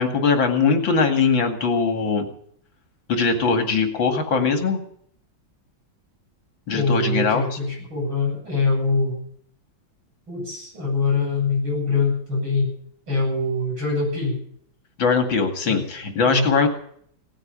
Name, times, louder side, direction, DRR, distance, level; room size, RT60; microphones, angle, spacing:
voice 1, 0.0-2.3 3.1-4.8 6.7-7.4 15.0-16.7, left 5 dB, 70° left, 6 dB, 3.0 m, -21 dB
voice 2, 6.7-9.1 10.3-12.7 13.1-14.4 15.6-15.8 16.3-16.5, left 3 dB, 80° right, -1 dB, 9.1 m, -23 dB
18.0 x 9.0 x 8.7 m, 0.62 s
omnidirectional pair, 2.1 m